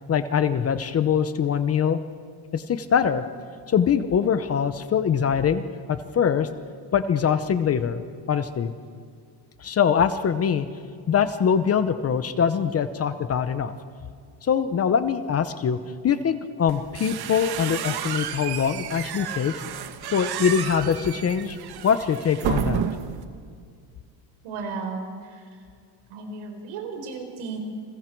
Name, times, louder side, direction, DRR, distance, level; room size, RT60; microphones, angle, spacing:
voice 1, 0.1-2.0 2.5-3.2 3.7-5.6 5.9-6.5 6.9-8.0 8.3-8.7 9.6-10.7 11.1-13.7 14.4-15.8 16.0-19.5 20.1-21.6 21.8-22.8, left 7 dB, 30° left, 11 dB, 0.8 m, -23 dB
sound 1, 16.7-23.2, right 9 dB, 50° right, 1.3 m, -31 dB
voice 2, 24.4-25.4 26.1-27.6, right 4 dB, 75° right, 4 dB, 4.6 m, -34 dB
30.0 x 22.0 x 4.6 m, 2.2 s
cardioid pair, 160°, 50 cm